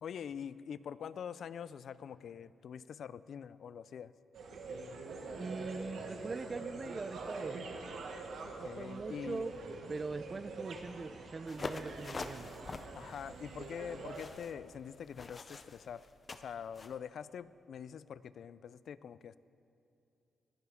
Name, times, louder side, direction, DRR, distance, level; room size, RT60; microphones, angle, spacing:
voice 1, 0.0-4.1 8.4-9.4 12.9-16.0 16.3-19.4, left 8 dB, 65° left, 17 dB, 0.4 m, -45 dB
sound 1, 4.3-14.2, right 3 dB, 80° right, 1.8 m, -45 dB
voice 2, 5.4-7.6 8.6-9.6 9.9-12.5, right 4 dB, 35° right, 14 dB, 0.5 m, -42 dB
sound 2, 11.5-17.0, left 4 dB, 35° left, 0.7 m, -46 dB
21.5 x 15.5 x 3.6 m, 2.8 s
cardioid pair, 120°, 0 cm